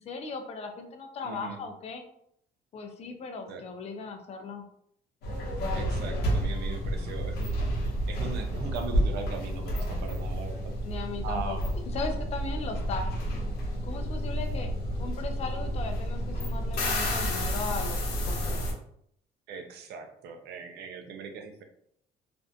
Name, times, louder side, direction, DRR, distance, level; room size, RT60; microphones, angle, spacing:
voice 1, 0.0-2.0 2.7-4.6 10.8-11.6 11.9-13.0 13.8-14.7 15.0-18.0 18.2-18.6, left 4 dB, 40° left, 5 dB, 0.4 m, -37 dB
voice 2, 1.2-1.6 3.5-3.6 5.7-10.8 11.2-11.6 19.5-21.6, right 5 dB, 75° right, 5 dB, 0.5 m, -39 dB
sound 1, 5.2-18.7, equal, 70° left, 0.7 m, -30 dB
2.5 x 2.1 x 2.6 m, 0.69 s
cardioid pair, 110°, 17 cm